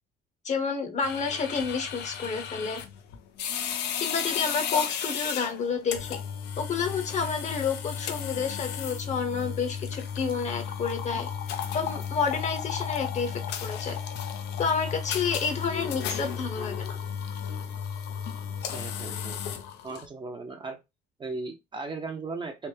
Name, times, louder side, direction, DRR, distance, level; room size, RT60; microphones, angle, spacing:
voice 1, 0.4-2.8 4.0-6.2 6.6-11.3 11.7-14.0 14.6-16.9, left 5 dB, 45° left, 0.8 m, -30 dB
sound 1, 1.0-20.1, left 8 dB, 85° left, 0.5 m, -34 dB
voice 2, 18.7-19.4 19.8-20.8 21.2-22.7, right 3 dB, 30° right, 0.6 m, -37 dB
3.3 x 2.1 x 3.2 m
cardioid pair, 110°, 17 cm